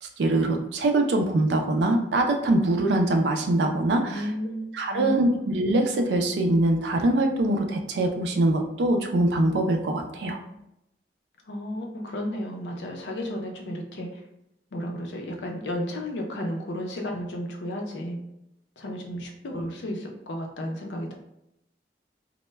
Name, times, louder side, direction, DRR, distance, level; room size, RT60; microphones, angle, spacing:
voice 1, 0.0-4.3 4.7-10.4, right 1 dB, 75° right, 4 dB, 0.4 m, -23 dB
voice 2, 4.1-5.4 11.5-14.2 14.7-18.2 18.8-21.1, equal, 85° left, 2 dB, 0.5 m, -33 dB
2.1 x 2.0 x 3.2 m, 0.82 s
head